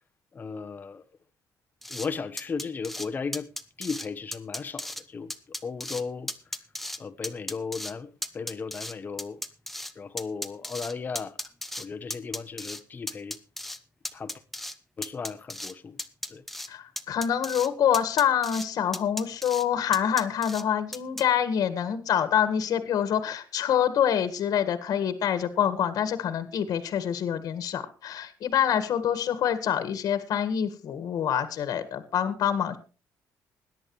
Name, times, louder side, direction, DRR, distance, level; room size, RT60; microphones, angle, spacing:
voice 1, 0.3-1.0 1.9-3.5 3.8-5.3 5.6-6.3 7.0-9.4 9.9-11.4 11.8-13.4 14.1-14.4 15.0-16.0 16.3-16.4, left 5 dB, 25° left, 1.1 m, -35 dB
sound 1, 1.8-2.1 2.4-3.1 3.3-4.1 4.3-5.0 5.3-6.0 6.3-7.0 7.2-7.9 8.2-9.9 10.2-11.8 12.1-12.8 13.1-13.8 14.0-14.7 15.0-15.7 16.0-16.7 17.0-17.7 17.9-18.7 18.9-19.6 19.9-20.6 20.9-21.2, left 1 dB, ahead, 1.0 m, -35 dB
voice 2, 16.7-32.8, left 9 dB, 60° left, 1.7 m, -26 dB
21.0 x 10.5 x 3.2 m
cardioid pair, 155°, 7 cm